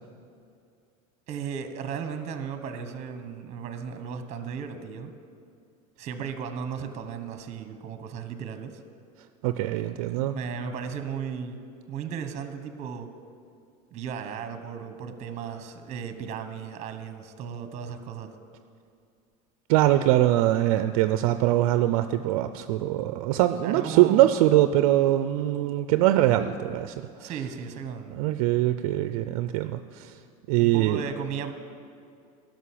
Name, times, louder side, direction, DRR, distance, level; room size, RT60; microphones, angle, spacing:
voice 1, 1.3-5.1 6.0-8.8 10.3-11.6 11.9-13.1 13.9-18.3 23.6-24.3 27.2-28.2 30.6-31.5, right 7 dB, 40° right, 8 dB, 1.1 m, -35 dB
voice 2, 9.4-10.4 19.7-26.9 27.2-27.3 28.1-30.1 30.5-31.0, right 14 dB, 80° right, 10 dB, 0.5 m, -22 dB
12.5 x 6.3 x 8.4 m, 2.4 s
supercardioid pair, 120°, 18 cm